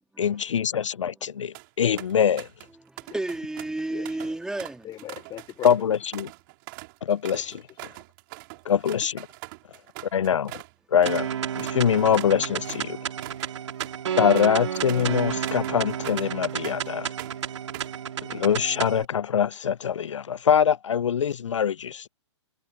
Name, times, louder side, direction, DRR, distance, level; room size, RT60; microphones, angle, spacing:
voice 1, 0.0-2.5 5.6-6.3 7.0-7.6 8.7-9.3 10.1-10.5 10.9-11.3 11.6-13.0 14.2-17.1 18.3-22.1, left 8 dB, 80° left, 0.6 m, -23 dB
sound 1, 1.3-1.7 2.0-2.7 3.0-10.7 11.0-11.3 11.6-16.9 17.2-18.0, right 25 dB, 45° right, 3.9 m, -43 dB
voice 2, 2.8-4.9, right 2 dB, 5° right, 1.9 m, -32 dB
voice 3, 3.9-4.4 4.8-5.9 7.4-8.0, left 13 dB, 25° left, 4.5 m, -41 dB
sound 2, 11.1-19.1, right 9 dB, 70° right, 2.6 m, -31 dB
hypercardioid pair, 125°, 16 cm